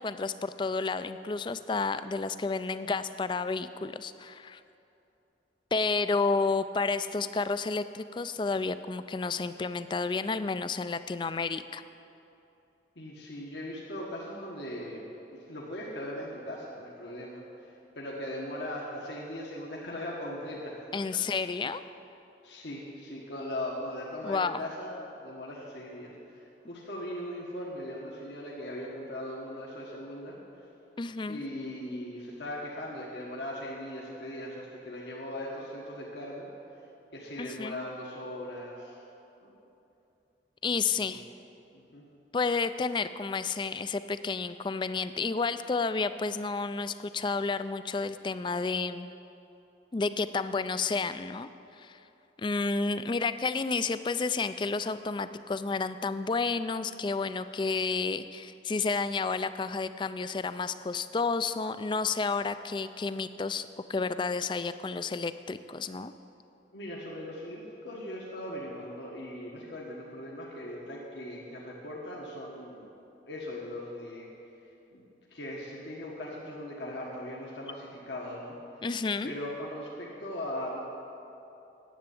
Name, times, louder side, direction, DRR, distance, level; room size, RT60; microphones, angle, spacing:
voice 1, 0.0-4.6 5.7-11.8 20.9-21.8 24.2-24.6 31.0-31.4 37.4-37.8 40.6-41.3 42.3-49.1 49.9-51.5 51.8-52.0 52.4-66.1 78.8-79.3, left 4 dB, 25° left, 12 dB, 0.3 m, -31 dB
voice 2, 12.9-15.0 15.3-17.4 17.9-20.8 22.4-30.3 31.3-36.5 37.1-39.0 39.4-39.5 40.9-41.2 41.7-42.0 66.7-72.9 73.3-74.3 74.9-75.0 75.3-78.6 79.2-80.8, left 1 dB, 75° left, -4 dB, 1.5 m, -39 dB
10.5 x 7.9 x 8.4 m, 2.8 s
head